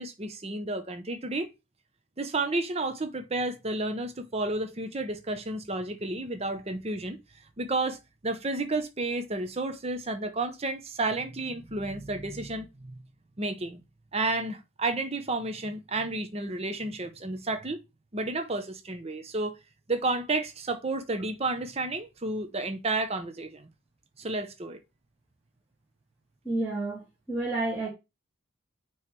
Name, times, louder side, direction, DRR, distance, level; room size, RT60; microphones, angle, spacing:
voice 1, 0.0-1.5 2.2-7.2 7.6-8.0 8.2-13.0 13.4-13.8 14.1-17.8 18.1-19.5 19.9-23.7 24.2-24.8, right 2 dB, 30° right, 0.8 m, -31 dB
voice 2, 26.5-27.0 27.3-27.9, right 2 dB, 10° right, 2.0 m, -29 dB
9.1 x 3.2 x 4.6 m
head